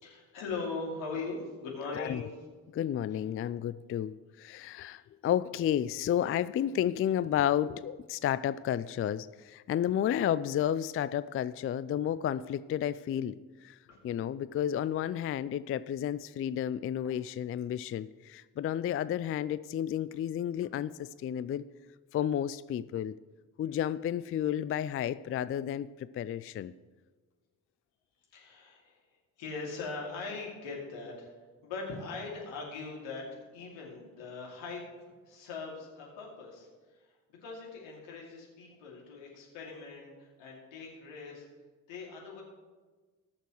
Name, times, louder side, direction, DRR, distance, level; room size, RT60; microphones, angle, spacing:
voice 1, 0.0-2.4 3.1-3.2 4.8-5.0 13.9-14.0 28.3-31.3 31.6-34.8 35.3-41.5 41.9-42.4, left 4 dB, 75° left, -1 dB, 2.6 m, -41 dB
voice 2, 2.7-13.4 13.6-13.8 14.0-21.6 22.1-23.1 23.6-26.7, left 10 dB, 30° left, 16 dB, 0.4 m, -31 dB
20.5 x 6.8 x 3.1 m, 1.3 s
hypercardioid pair, 40°, 45 cm